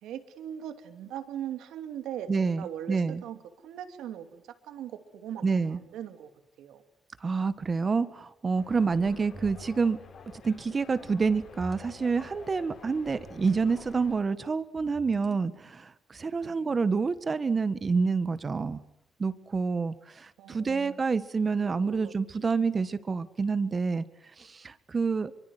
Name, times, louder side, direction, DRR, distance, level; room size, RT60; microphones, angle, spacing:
voice 1, 0.0-6.3 6.6-6.8 8.9-9.1 16.4-16.7 20.4-21.0 21.5-22.1 22.4-22.6, right 10 dB, 85° right, 8 dB, 2.7 m, -40 dB
voice 2, 2.3-3.2 5.4-5.8 7.2-10.0 10.4-18.8 19.2-24.0 24.4-25.3, right 4 dB, 35° right, 14 dB, 1.7 m, -28 dB
sound 1, 8.6-14.2, left 5 dB, 55° left, 7.0 m, -49 dB
sound 2, 9.3-9.8 11.2-12.2 13.1-13.8 14.8-15.6, right 1 dB, 15° right, 3.7 m, -48 dB
24.0 x 24.0 x 9.6 m, 0.82 s
cardioid pair, 90°, 0 cm